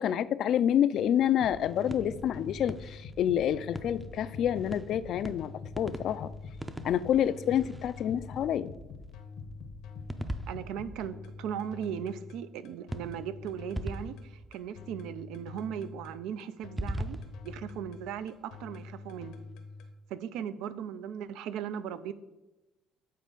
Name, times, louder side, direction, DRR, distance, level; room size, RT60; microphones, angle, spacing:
voice 1, 0.0-6.3 6.8-8.7, left 10 dB, 60° left, 15 dB, 0.3 m, -28 dB
sound 1, 0.9-8.4 10.1-11.8 12.9-15.3 16.6-18.7, right 1 dB, 10° right, 0.5 m, -42 dB
sound 2, 1.4-19.9, left 4 dB, 80° left, 0.9 m, -45 dB
voice 2, 10.5-17.2 17.4-19.5 20.1-22.1, right 8 dB, 80° right, 14 dB, 0.4 m, -38 dB
8.3 x 4.3 x 3.9 m, 1.0 s
cardioid pair, 120°, 0 cm